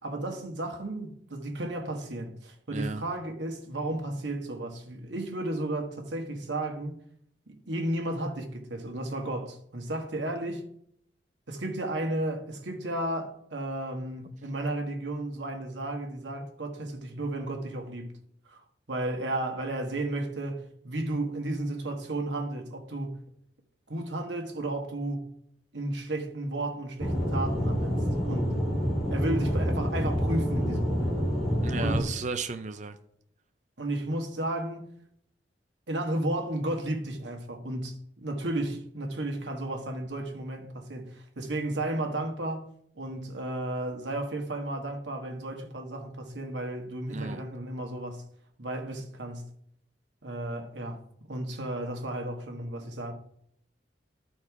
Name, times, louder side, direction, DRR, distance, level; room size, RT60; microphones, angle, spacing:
voice 1, 0.0-7.0 7.5-10.7 11.5-18.1 18.4-23.2 23.9-25.3 25.7-28.6 29.1-31.2 31.8-32.1 33.8-34.9 35.9-42.6 42.9-48.2 48.6-49.5 50.2-51.0 51.3-53.1, right 1 dB, 80° right, 1.5 m, -33 dB
voice 2, 2.7-3.0 31.6-33.0 47.1-47.4, right 4 dB, 40° right, 0.6 m, -34 dB
Aircraft / Engine, 27.0-32.0, equal, 5° right, 2.5 m, -27 dB
12.5 x 4.4 x 4.8 m
head